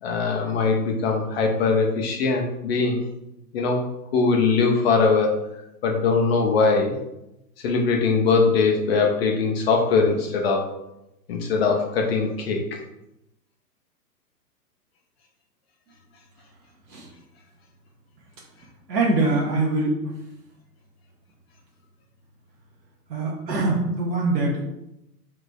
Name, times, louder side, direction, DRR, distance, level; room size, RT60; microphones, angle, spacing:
voice 1, 0.0-3.1 3.5-5.4 5.8-7.0 7.6-10.7 11.3-12.7, left 4 dB, 40° left, 2 dB, 0.6 m, -21 dB
voice 2, 18.9-20.0 23.1-24.6, right 2 dB, 80° right, -4 dB, 1.2 m, -23 dB
4.9 x 3.3 x 2.3 m, 0.88 s
hypercardioid pair, 130°, 50 cm